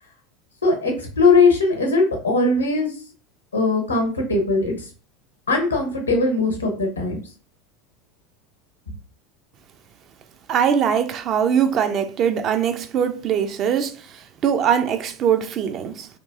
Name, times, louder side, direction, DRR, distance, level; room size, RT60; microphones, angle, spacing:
voice 1, 0.6-2.9 3.5-4.7 5.5-7.2, left 3 dB, 85° left, 0.8 m, -19 dB
voice 2, 10.5-14.0 14.4-16.1, right 8 dB, 40° right, 0.3 m, -21 dB
2.9 x 2.5 x 2.3 m
figure-of-eight pair, 75°, 0 cm